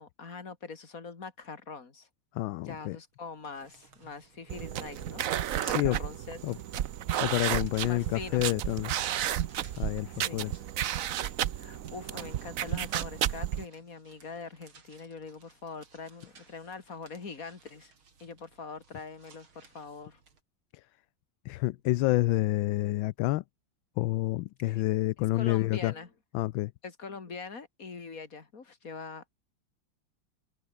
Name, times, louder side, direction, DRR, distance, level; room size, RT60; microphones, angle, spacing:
voice 1, 0.0-2.1 2.6-5.2 5.5-6.4 7.8-8.4 10.1-10.4 11.5-17.9 18.2-20.2 24.6-24.8 25.3-26.1 26.8-29.3, left 4 dB, 45° left, 2.9 m, -43 dB
voice 2, 2.3-3.0 5.6-6.0 6.4-6.6 7.2-8.9 9.8-10.5 20.7-20.8 21.4-23.4 24.0-25.9 26.3-26.7, left 17 dB, 75° left, 1.3 m, -28 dB
sound 1, 3.1-20.4, right 5 dB, 90° right, 4.2 m, -60 dB
sound 2, 4.5-13.7, right 11 dB, 60° right, 0.9 m, -32 dB
omnidirectional pair, 2.2 m